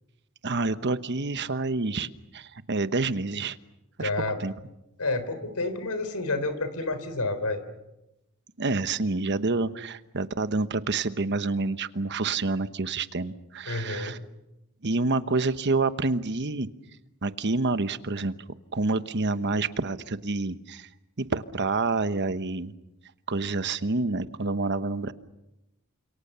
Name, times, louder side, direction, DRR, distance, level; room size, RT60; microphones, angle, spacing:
voice 1, 0.4-3.6 4.0-4.1 4.4-4.5 8.6-14.2 14.8-16.7 17.2-18.3 18.7-20.9 21.2-22.7 23.3-25.1, right 3 dB, 50° right, 12 dB, 1.1 m, -28 dB
voice 2, 4.0-4.4 5.0-7.6 13.7-14.1, left 2 dB, 85° left, 11 dB, 3.7 m, -29 dB
29.0 x 27.0 x 6.8 m, 0.93 s
head